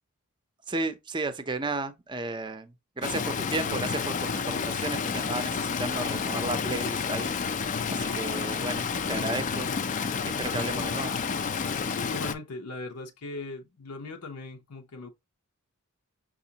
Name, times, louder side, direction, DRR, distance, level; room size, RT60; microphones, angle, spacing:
voice 1, 0.7-7.3 7.9-9.7 10.4-11.2, right 2 dB, 20° right, 0.5 m, -33 dB
Stream, 3.0-12.3, left 5 dB, 35° left, 0.3 m, -30 dB
voice 2, 11.6-15.1, left 3 dB, 85° left, 0.8 m, -39 dB
5.9 x 2.5 x 2.8 m
head